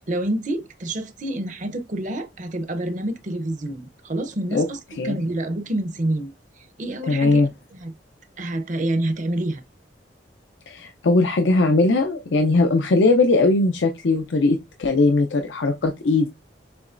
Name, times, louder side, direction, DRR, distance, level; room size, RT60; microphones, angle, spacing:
voice 1, 0.1-4.8 5.0-6.3 6.8-7.4 7.7-7.9 8.4-9.6, right 1 dB, 45° right, 0.7 m, -27 dB
voice 2, 7.1-7.5 10.7-16.3, left 3 dB, 80° left, 0.5 m, -19 dB
6.8 x 3.0 x 2.5 m
head